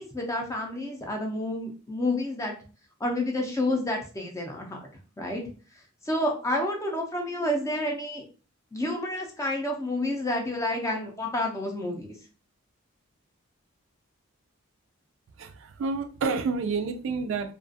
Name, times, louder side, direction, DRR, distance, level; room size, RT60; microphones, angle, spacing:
voice 1, 0.0-2.5 3.0-4.8 5.2-5.4 6.0-8.2 8.7-12.1, left 1 dB, 15° left, 0.5 m, -29 dB
voice 2, 15.4-17.5, right 4 dB, 60° right, 0.3 m, -29 dB
2.4 x 2.3 x 2.5 m
head